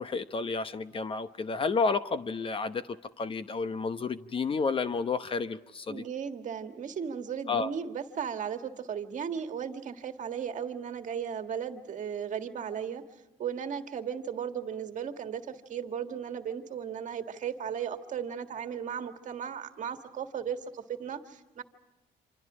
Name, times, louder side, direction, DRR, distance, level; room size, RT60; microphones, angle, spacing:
voice 1, 0.0-2.9 3.2-6.0 7.5-7.7, left 4 dB, 30° left, 12 dB, 0.9 m, -31 dB
voice 2, 5.9-13.0 13.4-21.6, right 7 dB, 45° right, 7 dB, 1.7 m, -36 dB
27.5 x 26.5 x 4.9 m, 1.1 s
cardioid pair, 110°, 17 cm